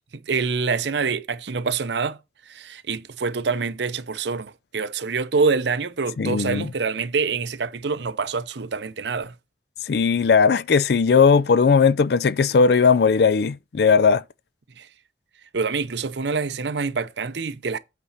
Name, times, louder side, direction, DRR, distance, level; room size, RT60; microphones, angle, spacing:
voice 1, 0.1-2.2 2.5-9.3 14.8-14.9 15.5-17.8, right 4 dB, 70° right, 0.7 m, -26 dB
voice 2, 6.2-6.7 9.9-14.2, left 5 dB, 60° left, 0.4 m, -18 dB
8.4 x 4.1 x 6.5 m
head